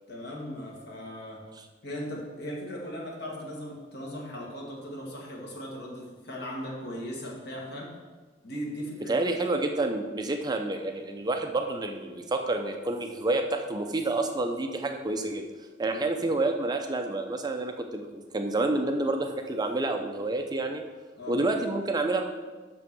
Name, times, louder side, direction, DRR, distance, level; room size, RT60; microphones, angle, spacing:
voice 1, 0.1-1.5 1.8-7.9 8.4-9.2 15.9-16.0 21.2-21.4, equal, 60° left, -1 dB, 1.7 m, -38 dB
voice 2, 9.1-15.5 15.8-20.8 21.3-22.2, right 2 dB, 20° right, 5 dB, 0.5 m, -29 dB
6.2 x 6.1 x 6.0 m, 1.4 s
head